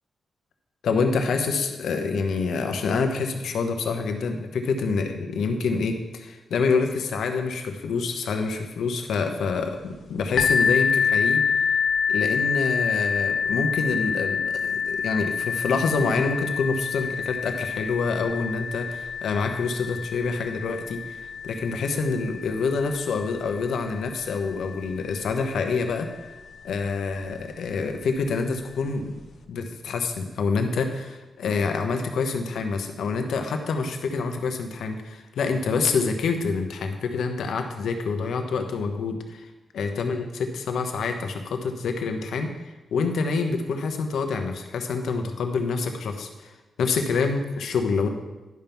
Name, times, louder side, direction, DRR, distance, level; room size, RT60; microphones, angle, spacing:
voice 1, 0.8-11.4 12.1-26.1 26.6-29.1 29.5-39.5 39.7-48.1, left 4 dB, 80° left, 5 dB, 1.1 m, -27 dB
sound 1, 10.4-25.9 26.7-26.8 27.3-27.4, left 6 dB, 60° left, 0.8 m, -27 dB
11.0 x 5.4 x 5.9 m, 1.1 s
wide cardioid pair, 140°, 0 cm